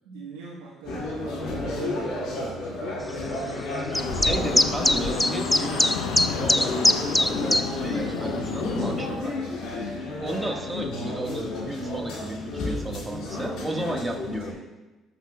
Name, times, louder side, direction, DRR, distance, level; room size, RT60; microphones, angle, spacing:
voice 1, 0.0-3.8 9.8-10.2, right 4 dB, 90° right, -5 dB, 1.0 m, -42 dB
sound 1, 0.9-14.5, left 2 dB, 70° left, 1.9 m, -31 dB
sound 2, 3.9-9.2, left 6 dB, 90° left, 0.6 m, -33 dB
sound 3, 3.9-7.6, left 1 dB, 10° left, 0.4 m, -21 dB
voice 2, 4.2-5.9 6.4-9.4 10.2-14.6, right 1 dB, 20° right, 2 dB, 1.4 m, -34 dB
13.0 x 5.5 x 2.2 m, 1.1 s
supercardioid pair, 65°, 0 cm